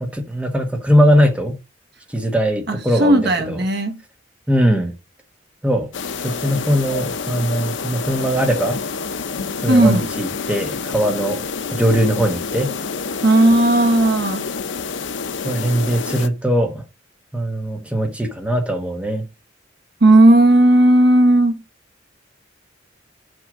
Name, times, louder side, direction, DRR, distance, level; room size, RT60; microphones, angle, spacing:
voice 1, 0.0-1.6 2.1-3.6 4.5-4.9 5.6-5.9 6.2-8.8 9.6-11.4 11.7-12.7 15.4-16.8 17.3-19.3, equal, 5° right, 1.2 m, -20 dB
voice 2, 2.7-4.0 9.7-10.1 13.2-14.5 20.0-21.6, right 1 dB, 55° right, 1.1 m, -14 dB
sound 1, 5.9-16.3, left 4 dB, 70° left, 0.8 m, -28 dB
6.2 x 5.5 x 5.1 m
head